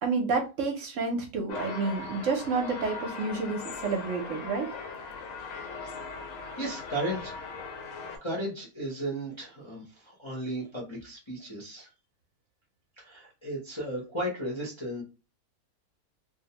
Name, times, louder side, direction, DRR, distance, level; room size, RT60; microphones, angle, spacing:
voice 1, 0.0-4.7, right 4 dB, 65° right, 3 dB, 0.9 m, -29 dB
sound 1, 1.5-8.2, left 4 dB, 70° left, 0.9 m, -39 dB
voice 2, 6.6-7.3 8.2-11.9 13.0-15.0, right 1 dB, 30° left, -5 dB, 0.5 m, -35 dB
2.6 x 2.0 x 2.8 m, 0.30 s
omnidirectional pair, 1.5 m